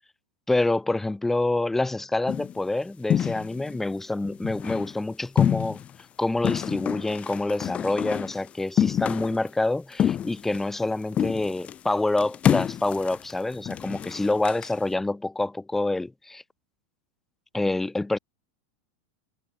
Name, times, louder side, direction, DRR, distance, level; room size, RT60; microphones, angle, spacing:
voice 1, 0.5-5.8 6.2-16.4 17.5-18.2, left 2 dB, 5° left, 4.7 m, -27 dB
sound 1, 2.3-2.6 3.1-3.8 4.2-4.9 5.4-6.0 6.4-8.4 8.8-9.5 9.9-10.9 11.1-11.8 12.2-14.7, left 9 dB, 25° left, 1.3 m, -27 dB
supercardioid pair, 140°, 5 cm